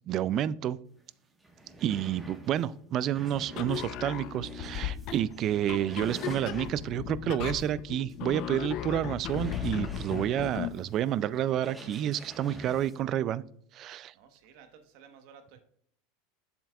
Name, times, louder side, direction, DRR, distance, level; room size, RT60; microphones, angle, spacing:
voice 1, 0.1-0.8 1.8-13.4 13.7-14.1, right 11 dB, 45° right, 19 dB, 0.3 m, -30 dB
sound 1, 1.0-1.1 1.4-7.1 7.6-7.7 8.1-8.2 9.1-13.0, right 1 dB, 10° right, 1.2 m, -47 dB
sound 2, 3.5-10.8, left 11 dB, 55° left, 0.6 m, -37 dB
voice 2, 14.1-15.6, right 7 dB, 65° right, 7 dB, 1.1 m, -55 dB
7.4 x 7.1 x 2.3 m, 0.65 s
supercardioid pair, 115°, 0 cm